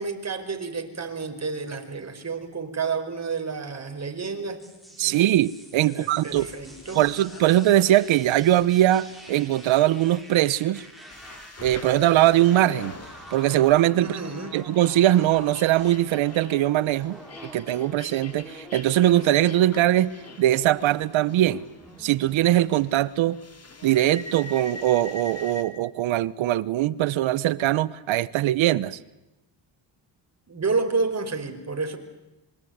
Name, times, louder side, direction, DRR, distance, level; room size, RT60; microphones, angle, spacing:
voice 1, 0.0-4.6 4.9-5.3 5.8-7.0 13.9-14.5 30.5-32.0, right 4 dB, 35° right, 5.0 m, -30 dB
sound 1, 4.6-23.0, right 1 dB, ahead, 7.3 m, -47 dB
voice 2, 5.0-6.5 6.9-10.8 11.6-13.0 13.3-14.1 14.5-17.2 17.5-21.6 22.0-23.4 23.8-29.0, right 13 dB, 75° right, 1.2 m, -21 dB
sound 2, 6.3-25.6, left 3 dB, 30° left, 3.1 m, -45 dB
26.5 x 23.5 x 9.6 m
supercardioid pair, 75°, 48 cm